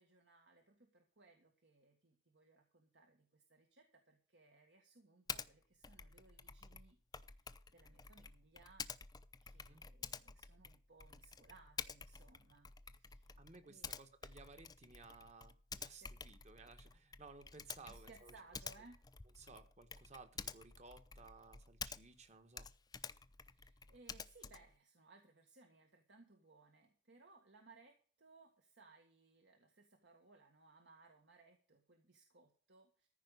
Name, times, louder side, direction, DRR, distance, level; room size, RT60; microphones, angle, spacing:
voice 1, 0.0-8.9 9.4-13.3 13.6-13.9 16.0-16.1 17.8-19.0 23.5-33.1, right 3 dB, 75° right, 3 dB, 1.8 m, -65 dB
Typing, 5.3-5.5 5.8-22.3 22.5-24.8, left 6 dB, 20° left, 0.6 m, -50 dB
voice 2, 13.4-18.3 19.4-22.7, right 3 dB, 40° right, 9 dB, 1.4 m, -58 dB
14.5 x 5.2 x 8.2 m, 0.43 s
head